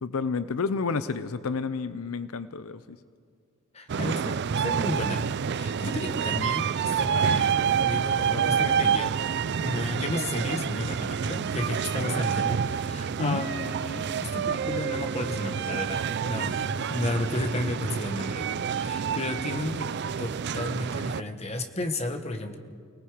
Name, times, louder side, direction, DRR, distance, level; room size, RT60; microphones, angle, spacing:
voice 1, 0.0-2.8 13.2-13.4, left 4 dB, 80° left, 13 dB, 0.6 m, -30 dB
voice 2, 3.7-5.2 5.5-9.1 9.6-22.6, left 2 dB, 30° left, 6 dB, 1.4 m, -33 dB
sound 1, 3.9-21.2, right 7 dB, 55° right, 0.4 m, -28 dB
29.0 x 18.5 x 5.1 m, 2.1 s
head